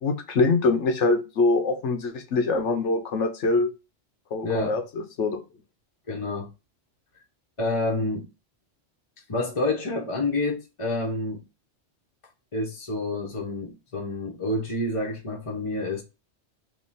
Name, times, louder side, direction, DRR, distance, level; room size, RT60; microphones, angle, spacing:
voice 1, 0.0-3.7 4.3-4.8 5.2-5.4, left 3 dB, 80° left, 1.2 m, -23 dB
voice 2, 4.4-4.8 6.1-6.5 7.6-8.3 9.3-11.4 12.5-16.0, left 2 dB, 30° left, 0.8 m, -28 dB
3.6 x 2.8 x 4.1 m
omnidirectional pair, 1.2 m